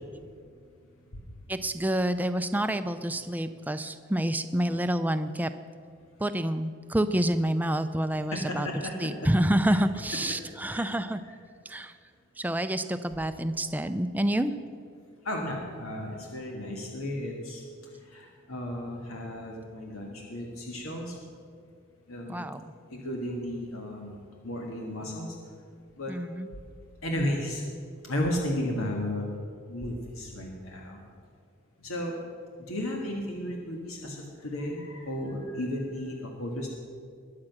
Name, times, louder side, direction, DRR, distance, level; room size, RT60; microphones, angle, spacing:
voice 1, 1.5-5.5 6.2-8.7 9.0-11.2 11.7-11.9 12.4-14.5 22.3-22.6 26.1-26.5, right 1 dB, 10° right, 10 dB, 0.5 m, -28 dB
voice 2, 8.3-9.1 9.7-9.8 10.7-10.9 15.2-21.2 22.1-22.5 22.9-25.4 26.0-26.1 27.0-27.6 28.0-29.3 29.7-31.0 31.8-32.2 32.7-36.7, left 1 dB, 85° left, 0 dB, 1.8 m, -34 dB
21.5 x 7.6 x 6.0 m, 2.2 s
head